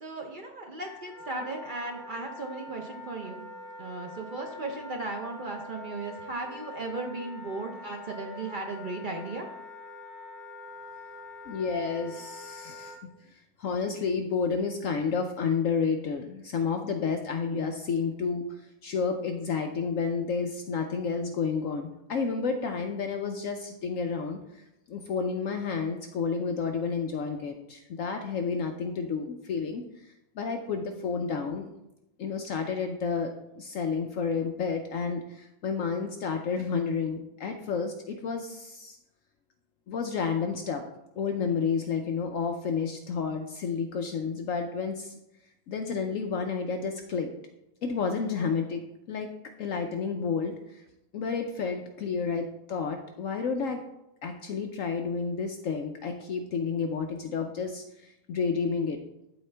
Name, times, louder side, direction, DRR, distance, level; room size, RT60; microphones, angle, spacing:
voice 1, 0.0-3.4 3.8-9.5, right 3 dB, 60° right, 2 dB, 0.5 m, -36 dB
Wind instrument woodwind instrument, 0.8-13.0, left 3 dB, ahead, 2.8 m, -45 dB
voice 2, 11.5-13.0 13.3-18.5 18.8-24.4 24.9-29.8 30.4-31.7 32.2-39.0 39.9-40.8 41.2-45.1 45.7-47.3 47.8-48.8 49.1-49.3 49.6-50.8 51.1-53.8 54.2-57.8 58.3-59.0, left 5 dB, 65° left, 5 dB, 0.8 m, -30 dB
12.0 x 4.0 x 3.3 m, 0.86 s
omnidirectional pair, 1.8 m